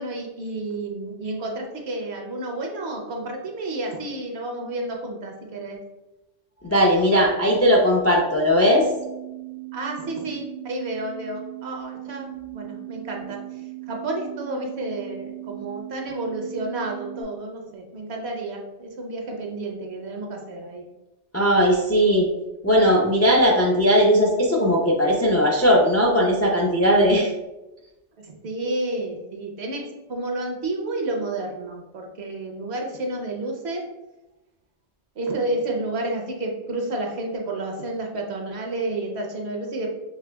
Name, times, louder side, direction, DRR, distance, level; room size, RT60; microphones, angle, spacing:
voice 1, 0.0-5.8 9.7-13.4 13.9-20.8 28.2-33.9 35.2-39.9, right 2 dB, 65° right, 1 dB, 1.0 m, -30 dB
voice 2, 6.6-8.9 21.3-22.3 22.6-27.3, equal, 25° left, -2 dB, 0.3 m, -18 dB
sound 1, 8.8-17.2, right 17 dB, 80° left, 1.1 m, -38 dB
6.0 x 3.2 x 2.2 m, 0.99 s
omnidirectional pair, 1.3 m